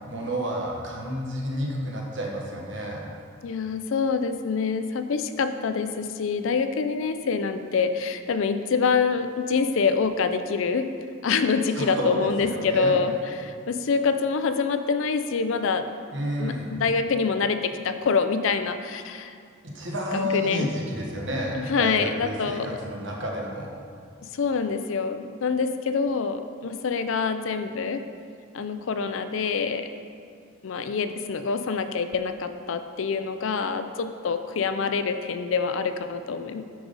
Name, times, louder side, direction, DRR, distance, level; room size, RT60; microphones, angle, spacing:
voice 1, 0.1-3.0 11.7-12.2 12.4-13.0 16.1-16.7 19.7-23.7, equal, 60° right, -2 dB, 1.3 m, -30 dB
voice 2, 3.4-10.9 11.2-13.1 13.4-15.8 16.4-19.3 20.1-20.7 21.7-22.8 24.3-28.0 28.5-29.9 30.6-36.6, left 5 dB, 65° left, 9 dB, 0.4 m, -26 dB
9.4 x 5.1 x 4.0 m, 2.2 s
head